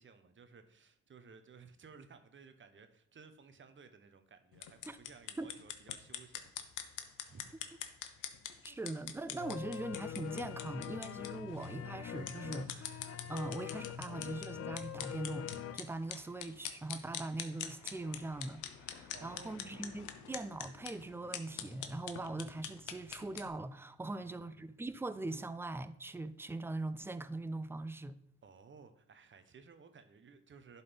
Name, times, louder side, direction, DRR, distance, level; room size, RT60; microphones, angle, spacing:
voice 1, 0.0-7.0 7.3-7.4 19.1-19.9 24.1-24.6 28.4-30.8, right 5 dB, 40° right, 1.1 m, -57 dB
sound 1, 4.5-23.5, left 10 dB, 85° left, 0.9 m, -46 dB
voice 2, 8.6-28.2, right 2 dB, 10° right, 0.5 m, -41 dB
sound 2, 9.4-15.8, left 9 dB, 55° left, 0.6 m, -44 dB
11.0 x 4.2 x 5.2 m
cardioid pair, 90°, 30 cm